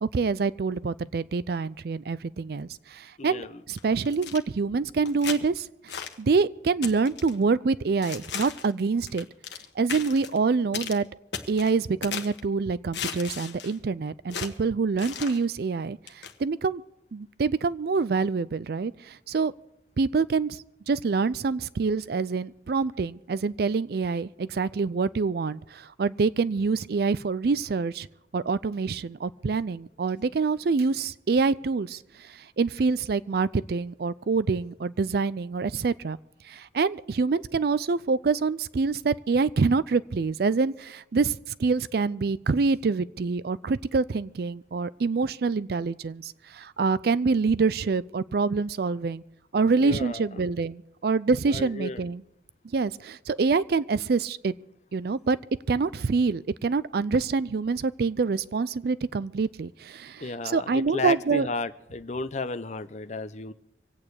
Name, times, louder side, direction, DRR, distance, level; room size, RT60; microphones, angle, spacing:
voice 1, 0.0-5.9 6.2-9.3 9.8-11.1 11.5-16.8 17.1-19.5 20.0-28.1 28.3-36.2 36.4-49.2 49.5-52.2 52.7-54.5 54.9-55.4 55.7-61.5, right 4 dB, 60° right, 18 dB, 0.4 m, -26 dB
voice 2, 3.2-3.6 49.7-50.4 51.5-52.0 60.2-63.5, left 3 dB, 40° left, 12 dB, 0.7 m, -33 dB
sound 1, 3.7-4.4 5.1-5.4 5.9-6.2 6.8-7.3 8.0-8.7 9.1-9.6 9.9-10.4 10.7-11.0 11.3-12.4 12.9-13.8 14.3-14.5 15.0-15.4 16.1-16.3, left 7 dB, 80° left, 1.3 m, -36 dB
25.5 x 8.8 x 4.8 m, 0.85 s
head